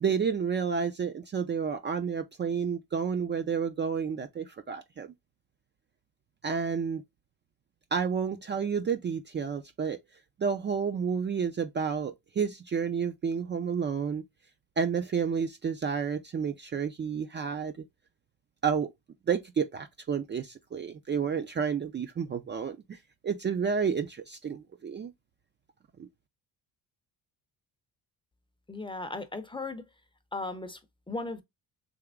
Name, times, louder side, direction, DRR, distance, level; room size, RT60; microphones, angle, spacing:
voice 1, 0.0-5.1 6.4-7.0 7.9-10.0 10.4-14.2 14.8-17.7 18.6-18.9 19.3-23.0 23.2-25.1 26.0-26.1, right 6 dB, 30° right, 0.4 m, -30 dB
voice 2, 28.7-29.8 30.3-30.8 31.1-31.4, left 3 dB, 15° left, 0.6 m, -36 dB
3.5 x 2.9 x 3.5 m
cardioid pair, 90°, 39 cm